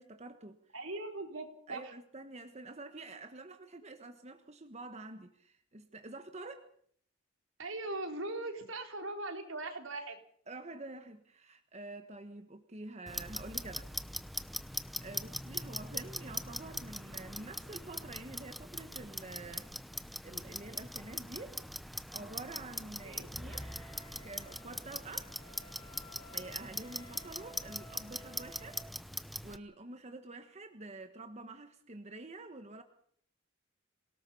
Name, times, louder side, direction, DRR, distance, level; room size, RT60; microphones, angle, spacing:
voice 1, 0.0-0.6 1.7-6.7 10.5-13.9 14.5-19.7 20.2-21.6 22.1-23.7 24.2-25.3 26.3-28.8 29.4-32.8, right 2 dB, 35° right, 7 dB, 1.4 m, -48 dB
voice 2, 0.7-1.9 7.6-10.2 15.9-16.1 23.0-23.3, right 2 dB, 80° right, 4 dB, 3.9 m, -40 dB
Clock, 13.1-29.6, equal, ahead, 0.8 m, -42 dB
Wind instrument woodwind instrument, 23.5-28.9, equal, 25° left, 2.9 m, -56 dB
27.5 x 18.5 x 5.5 m, 0.62 s
head